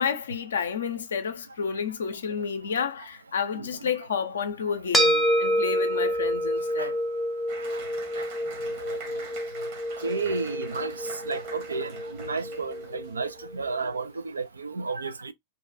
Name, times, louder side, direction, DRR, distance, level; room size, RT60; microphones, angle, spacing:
voice 1, 0.0-7.0, left 6 dB, 65° left, 0.5 m, -30 dB
voice 2, 3.5-3.9 6.8-6.9 7.6-7.8 8.2-8.3 8.7-9.2 10.0-15.3, right 4 dB, 75° right, 0.3 m, -33 dB
sound 1, 4.9-13.5, equal, ahead, 0.6 m, -28 dB
Applause, 7.5-13.2, right 5 dB, 50° right, 1.0 m, -45 dB
2.6 x 2.2 x 2.5 m
figure-of-eight pair, 90°, 0 cm